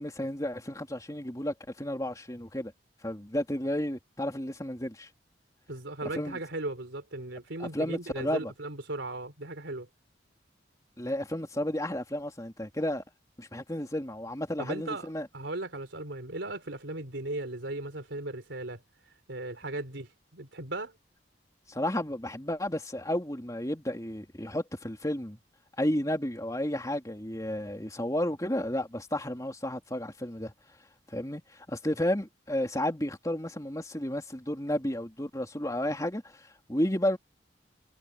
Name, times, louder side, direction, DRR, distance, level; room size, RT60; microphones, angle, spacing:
voice 1, 0.0-2.7 3.0-5.1 6.1-6.4 7.6-8.5 11.0-13.0 13.4-15.3 21.7-25.4 25.8-30.5 31.1-37.2, left 1 dB, 20° left, 3.2 m, -32 dB
voice 2, 5.7-9.9 14.6-15.1 15.3-18.8 19.3-20.9, right 2 dB, 90° right, 3.6 m, -37 dB
head